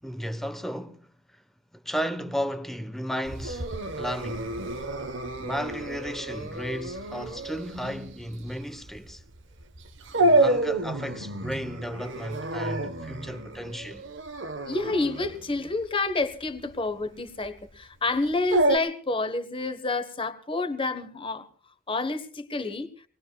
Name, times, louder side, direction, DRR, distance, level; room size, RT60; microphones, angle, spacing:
voice 1, 0.0-1.4 1.7-4.5 5.4-9.2 10.1-14.0, equal, ahead, 1.0 m, -34 dB
Dog, 3.2-18.8, right 2 dB, 65° right, 1.2 m, -29 dB
voice 2, 14.6-21.5 21.9-22.9, left 3 dB, 25° left, 1.2 m, -29 dB
26.5 x 20.5 x 2.3 m
head